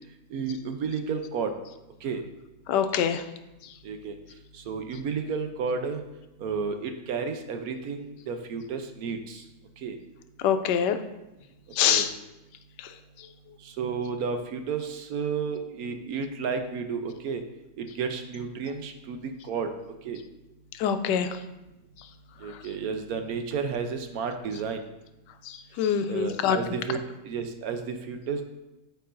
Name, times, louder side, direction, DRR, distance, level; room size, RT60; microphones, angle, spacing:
voice 1, 0.3-1.5 2.0-2.2 3.8-4.2 4.5-6.0 6.4-9.4 9.8-10.0 11.9-12.1 13.6-17.4 17.8-19.7 20.0-20.2 22.4-24.8 26.1-27.0 27.2-28.4, right 5 dB, 70° right, 6 dB, 1.0 m, -32 dB
voice 2, 2.7-3.2 10.4-11.0 11.8-12.1 20.8-21.3 25.8-26.6, left 8 dB, 90° left, 9 dB, 1.2 m, -24 dB
12.5 x 4.6 x 2.5 m, 0.96 s
omnidirectional pair, 1.8 m